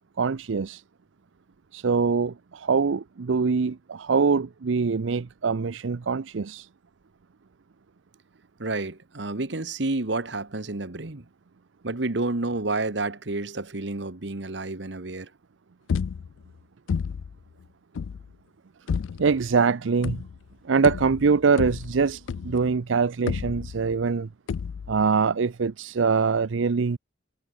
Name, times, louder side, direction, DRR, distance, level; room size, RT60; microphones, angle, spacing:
voice 1, 0.2-0.8 1.7-6.7 19.2-20.2 20.6-24.3 24.9-27.0, right 5 dB, 80° right, 0.6 m, -23 dB
voice 2, 8.6-11.2 11.8-15.3, right 2 dB, 65° right, 1.4 m, -30 dB
sound 1, 15.9-16.5 16.9-17.4 18.0-18.3 18.9-19.4 20.0-20.5 20.8-22.8 23.3-24.0 24.5-25.0, left 6 dB, 80° left, 0.4 m, -31 dB
head